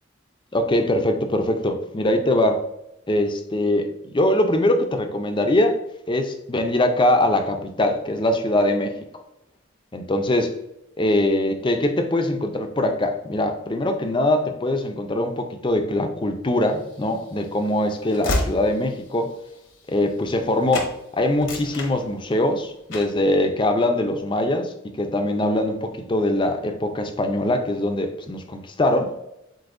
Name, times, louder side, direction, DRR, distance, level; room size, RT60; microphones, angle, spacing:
voice 1, 0.5-2.6 3.1-5.8 6.1-8.9 9.9-10.5 11.0-19.3 19.9-29.1, left 1 dB, 25° left, 6 dB, 0.5 m, -22 dB
Train / Slam, 16.8-20.5 20.7-20.9 21.3-22.5 22.9-23.2, left 1 dB, 70° left, 1.0 m, -30 dB
7.7 x 2.6 x 2.6 m, 0.85 s
head